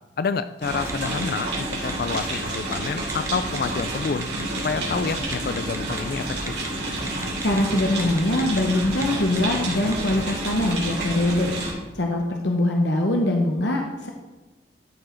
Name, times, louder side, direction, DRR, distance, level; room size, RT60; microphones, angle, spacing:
voice 1, 0.2-4.3 4.6-6.6, left 5 dB, 55° left, 12 dB, 0.3 m, -28 dB
sound 1, 0.6-11.7, right 2 dB, 70° right, 3.2 m, -30 dB
Telephone, 0.9-1.2 1.5-2.8 3.1-3.3 3.6-4.6 5.3-6.0 6.5-6.7 7.1-8.6 8.9-9.0 9.4-10.3, right 3 dB, 15° right, 0.6 m, -36 dB
sound 2, 4.2-10.5, equal, 40° right, 1.4 m, -40 dB
voice 2, 7.4-11.5 11.9-14.1, left 1 dB, 70° left, 2 dB, 0.9 m, -23 dB
13.0 x 4.9 x 4.5 m, 1.2 s
head